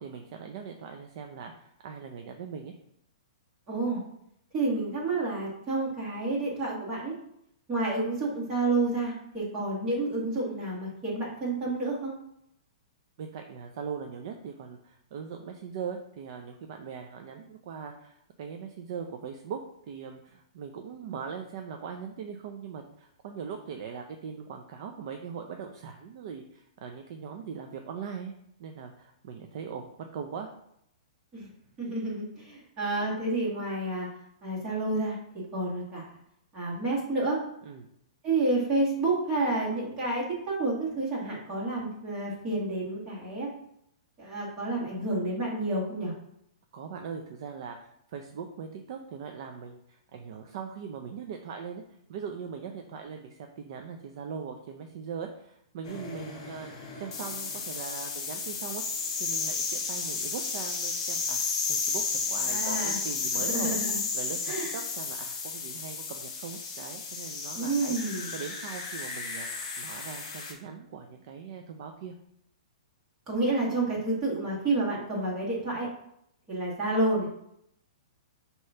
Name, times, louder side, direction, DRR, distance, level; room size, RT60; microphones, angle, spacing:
voice 1, 0.0-2.7 13.2-28.3 28.6-30.5 37.6-37.9 46.7-51.8 52.1-56.7 57.0-58.8 59.2-63.8 64.1-72.1, right 6 dB, 45° right, 4 dB, 0.6 m, -40 dB
voice 2, 3.7-4.0 4.5-7.1 7.7-12.1 31.3-31.5 31.8-34.1 34.4-35.2 35.5-36.2 36.5-37.4 38.2-43.5 44.2-46.1 62.5-63.0 63.3-64.0 64.5-64.8 67.6-68.3 73.3-75.9 76.5-77.3, right 2 dB, 20° right, -6 dB, 2.0 m, -29 dB
sound 1, 55.8-70.5, left 4 dB, 35° left, 2.2 m, -33 dB
6.4 x 3.1 x 5.7 m, 0.75 s
hypercardioid pair, 165°, 4 cm